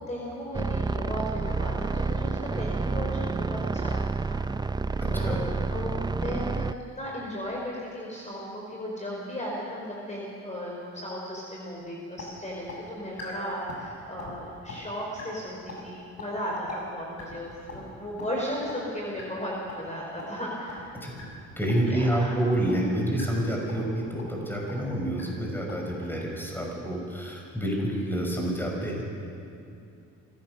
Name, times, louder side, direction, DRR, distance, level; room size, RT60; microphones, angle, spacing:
voice 1, 0.1-4.7 5.1-20.8 21.8-22.4, equal, 25° left, -3 dB, 4.9 m, -36 dB
sound 1, 0.5-6.7, right 4 dB, 15° right, 0.4 m, -29 dB
voice 2, 4.8-5.4 21.0-21.1 21.6-29.0, right 1 dB, 5° left, -1 dB, 6.3 m, -28 dB
sound 2, 11.7-11.8 12.2-12.3 12.7-12.8 13.2-13.3 13.7-13.9 14.2-14.3 14.7-14.8 15.2-15.3 15.7-15.8 16.2-16.3 16.7-16.8 17.2-17.4 17.7-17.8 18.2-18.3 18.7-18.8 19.2-19.3 19.7-19.8 20.2-20.3 20.7-20.8 21.2-21.3 21.7-21.8 22.2-22.3 22.7-22.8 23.2-23.3 23.7-23.9 24.2-24.3 24.7-24.8 25.2-25.3 25.7-25.8, left 5 dB, 55° left, 7.2 m, -40 dB
25.5 x 16.5 x 6.8 m, 2.5 s
cardioid pair, 90°, 30 cm